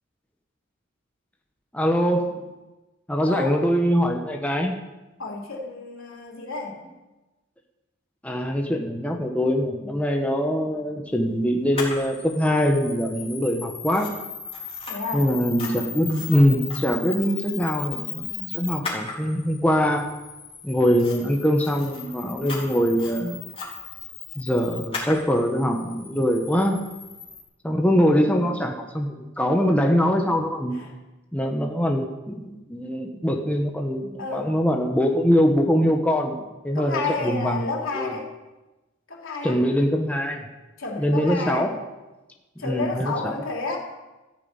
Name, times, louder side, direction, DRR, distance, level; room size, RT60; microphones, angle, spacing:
voice 1, 1.7-2.4 3.1-4.8 8.2-14.1 15.1-20.1 20.6-23.4 24.3-26.8 27.6-30.8 31.3-36.4 36.6-37.7 37.9-38.1 39.4-40.5 41.0-41.7 42.6-43.3, equal, 5° left, 1 dB, 1.3 m, -23 dB
voice 2, 3.2-3.6 5.2-6.8 14.9-15.3 28.1-28.6 30.7-30.9 34.2-34.5 36.7-38.3 39.1-39.6 40.8-41.7 42.6-43.8, left 4 dB, 70° left, 0 dB, 3.4 m, -31 dB
Camera, 11.7-27.4, left 5 dB, 30° left, 4.4 m, -36 dB
13.5 x 9.7 x 8.8 m, 1.1 s
head